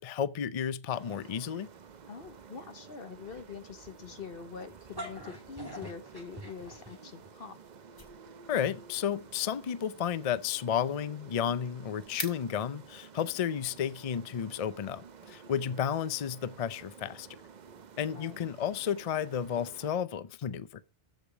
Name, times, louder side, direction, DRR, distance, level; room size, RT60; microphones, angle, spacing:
voice 1, 0.0-1.7 8.5-17.3 18.0-20.8, left 8 dB, 45° left, 0.5 m, -32 dB
sound 1, 0.9-19.9, right 6 dB, 50° right, 0.7 m, -52 dB
voice 2, 2.1-7.6 15.6-15.7 18.0-18.4, left 5 dB, 60° left, 1.2 m, -45 dB
sound 2, 4.7-7.3, equal, 20° right, 2.4 m, -44 dB
sound 3, 7.3-13.1, left 1 dB, 20° left, 2.7 m, -48 dB
14.0 x 5.0 x 5.0 m
omnidirectional pair, 1.1 m